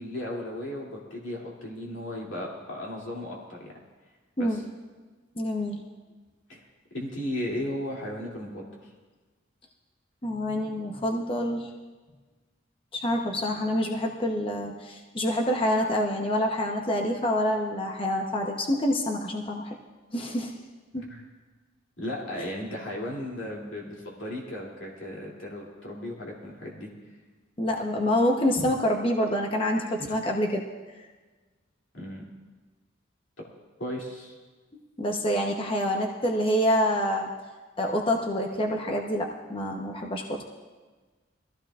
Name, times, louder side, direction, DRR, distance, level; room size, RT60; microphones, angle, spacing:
voice 1, 0.0-3.8 4.4-4.6 6.5-6.6 6.9-8.9 21.1-21.2 22.0-26.9 30.0-30.1 31.9-32.2 33.8-34.3, left 1 dB, 70° left, -3 dB, 2.7 m, -35 dB
voice 2, 5.4-5.8 10.2-11.7 12.9-19.8 20.1-20.6 20.9-21.0 22.3-22.4 27.6-30.6 35.0-37.3 37.8-40.4, equal, 25° left, 1 dB, 0.9 m, -27 dB
22.0 x 15.0 x 2.5 m, 1.3 s
head